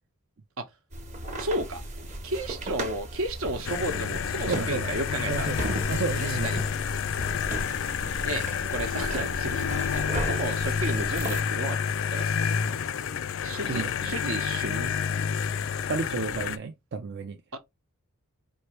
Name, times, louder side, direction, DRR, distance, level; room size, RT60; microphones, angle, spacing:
sound 1, 0.9-11.4, right 1 dB, 30° right, 1.0 m, -36 dB
voice 1, 1.4-1.8 2.2-5.7 6.2-6.6 8.3-8.4 8.7-12.2 13.4-15.0 17.5-17.6, right 2 dB, 70° right, 1.0 m, -33 dB
sound 2, 3.6-16.6, left 7 dB, 60° left, 0.4 m, -29 dB
voice 2, 4.5-4.9 5.3-5.6 5.9-6.7 13.7-14.1 15.9-17.4, right 4 dB, 50° right, 0.5 m, -31 dB
4.7 x 2.6 x 3.1 m
head